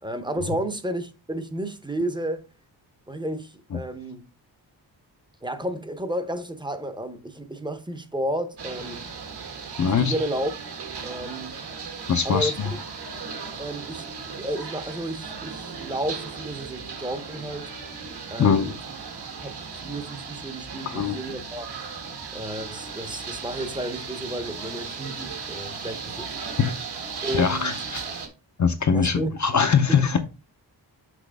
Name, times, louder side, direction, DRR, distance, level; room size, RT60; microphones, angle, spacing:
voice 1, 0.0-2.5 3.1-4.2 5.4-9.1 10.0-10.5 11.0-11.6 12.2-12.6 13.6-14.1 14.4-17.7 18.3-18.8 19.4-21.7 22.3-26.3 27.2-27.8 28.9-29.3 29.9-30.1, right 1 dB, 10° right, 0.8 m, -32 dB
sound 1, 8.6-28.3, right 5 dB, 65° right, 1.6 m, -36 dB
voice 2, 9.8-10.1 12.1-12.7 18.4-18.7 20.9-21.2 26.6-26.7 27.3-28.0 28.6-30.2, left 6 dB, 45° left, 0.7 m, -22 dB
6.2 x 5.9 x 3.4 m
wide cardioid pair, 155°, 42 cm